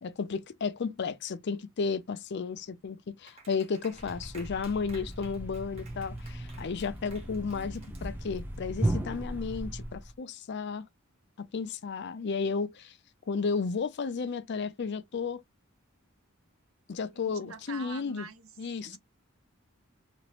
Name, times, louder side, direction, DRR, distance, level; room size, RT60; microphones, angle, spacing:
voice 1, 0.0-10.9 11.4-12.9 13.3-15.4 16.9-18.3 18.6-19.0, left 5 dB, 55° left, 0.5 m, -33 dB
Clapping, 3.3-8.6, right 3 dB, 30° right, 1.2 m, -55 dB
Thump thud, 3.9-10.1, right 1 dB, 10° right, 0.7 m, -36 dB
voice 2, 17.1-19.0, right 6 dB, 80° right, 0.7 m, -46 dB
3.0 x 2.5 x 3.0 m
head